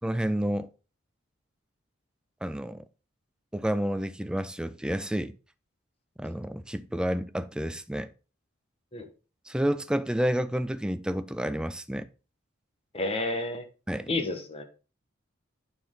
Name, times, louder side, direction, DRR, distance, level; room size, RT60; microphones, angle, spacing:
voice 1, 0.0-0.7 2.4-2.8 3.5-5.4 6.2-8.1 9.5-12.1 13.9-14.1, equal, 5° right, 0.4 m, -30 dB
voice 2, 12.9-13.6 14.1-14.6, left 2 dB, 30° left, 1.2 m, -30 dB
9.4 x 4.5 x 3.7 m
head